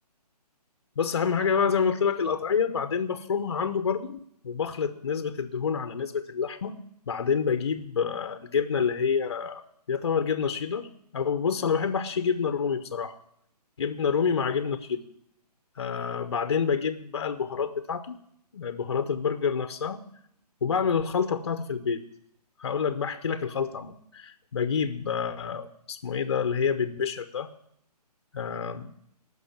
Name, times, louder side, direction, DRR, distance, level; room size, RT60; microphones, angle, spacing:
voice 1, 1.0-6.8 7.1-9.6 9.9-10.9 11.1-13.2 13.8-15.0 15.8-18.2 18.5-20.0 20.6-22.0 22.6-27.5 28.3-28.9, left 6 dB, 40° left, 10 dB, 0.7 m, -28 dB
15.0 x 6.3 x 8.6 m, 0.71 s
hypercardioid pair, 175°, 21 cm